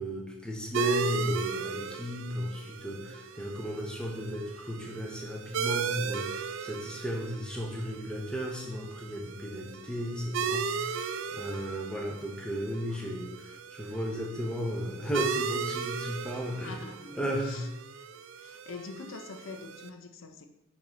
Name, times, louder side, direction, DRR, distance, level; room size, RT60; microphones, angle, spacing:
voice 1, 0.0-16.8 17.1-17.6, equal, 5° left, 1.0 m, -35 dB
sound 1, 0.7-19.9, right 6 dB, 80° right, 0.5 m, -36 dB
voice 2, 16.5-17.2 17.5-17.6 17.9-18.1 18.4-20.5, left 4 dB, 90° left, 0.6 m, -44 dB
6.0 x 5.5 x 4.0 m
head